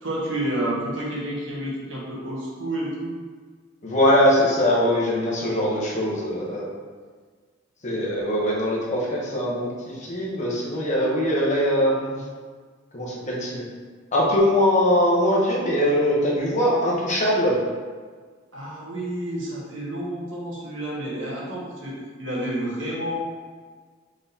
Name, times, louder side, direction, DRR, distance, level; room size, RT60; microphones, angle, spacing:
voice 1, 0.0-3.1 18.5-23.2, right 1 dB, 85° right, -5 dB, 1.1 m, -30 dB
voice 2, 3.8-6.7 7.8-9.7 10.0-12.2 12.9-13.6 14.1-17.6, equal, 40° left, -4 dB, 0.8 m, -21 dB
4.0 x 3.5 x 2.7 m, 1.5 s
head